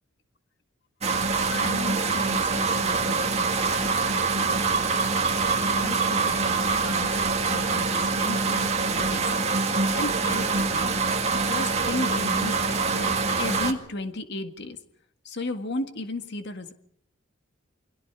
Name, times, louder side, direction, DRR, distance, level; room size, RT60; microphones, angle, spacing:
sound 1, 1.0-13.7, right 4 dB, 35° right, 2.1 m, -25 dB
voice 1, 1.5-5.1 5.7-7.1 7.5-9.4 10.0-11.0 11.5-14.8 15.2-16.7, left 2 dB, 60° left, 8 dB, 1.8 m, -35 dB
29.5 x 22.0 x 4.8 m, 0.67 s
head